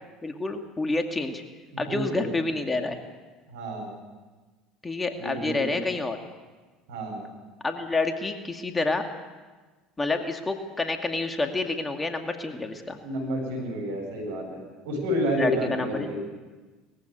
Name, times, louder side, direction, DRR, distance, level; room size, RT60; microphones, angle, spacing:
voice 1, 0.2-1.4 1.8-3.0 4.8-6.2 7.6-9.1 10.0-13.0 15.4-16.1, left 3 dB, 20° left, 5 dB, 2.4 m, -28 dB
voice 2, 1.7-2.3 3.5-3.9 5.2-5.8 6.9-7.2 13.0-16.2, equal, 75° right, 2 dB, 8.0 m, -30 dB
21.0 x 15.5 x 9.4 m, 1.3 s
hypercardioid pair, 70°, 0 cm